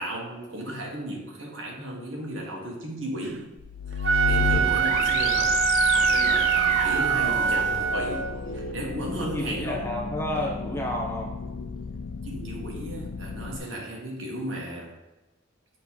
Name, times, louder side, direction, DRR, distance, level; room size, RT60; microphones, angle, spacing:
voice 1, 0.0-3.5 3.9-5.6 5.9-9.8 12.2-14.9, right 1 dB, 75° right, -1 dB, 1.5 m, -35 dB
sound 1, 3.6-13.6, left 5 dB, 80° left, 0.5 m, -31 dB
Wind instrument woodwind instrument, 3.9-8.3, right 8 dB, 60° right, 0.4 m, -23 dB
voice 2, 9.2-11.3, left 1 dB, 10° left, -2 dB, 1.0 m, -31 dB
7.1 x 3.2 x 5.5 m, 1.0 s
head